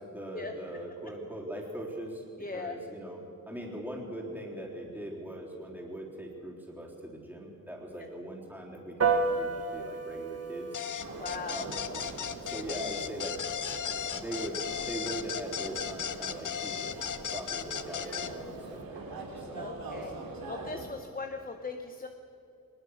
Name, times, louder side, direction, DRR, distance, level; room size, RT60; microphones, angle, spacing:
voice 1, 0.0-2.2 2.5-10.8 11.5-11.6 12.4-13.4 14.1-19.7, right 1 dB, 5° right, -2 dB, 3.7 m, -41 dB
voice 2, 2.4-2.8 11.2-11.7 19.5-22.1, left 4 dB, 25° left, 6 dB, 0.8 m, -39 dB
Piano, 9.0-18.7, right 4 dB, 45° right, 1.5 m, -36 dB
sound 1, 10.7-18.3, left 8 dB, 60° left, 0.8 m, -36 dB
sound 2, 11.0-20.8, right 2 dB, 85° right, 3.5 m, -43 dB
22.5 x 20.0 x 6.4 m, 2.8 s
wide cardioid pair, 175°, 34 cm